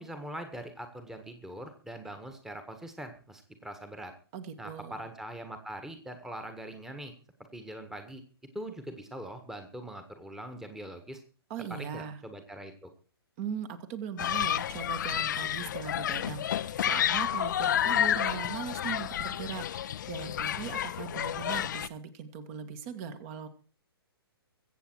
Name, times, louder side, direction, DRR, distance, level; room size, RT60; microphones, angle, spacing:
voice 1, 0.0-4.1 4.6-7.1 7.5-8.2 8.5-11.2 11.7-12.9, right 1 dB, 5° right, 8 dB, 1.6 m, -42 dB
voice 2, 4.3-5.0 11.5-12.2 13.4-23.5, right 7 dB, 35° right, 10 dB, 1.8 m, -39 dB
Human group actions, 14.2-21.9, left 10 dB, 50° left, 0.7 m, -30 dB
23.0 x 8.2 x 4.6 m, 0.38 s
figure-of-eight pair, 125°, 13 cm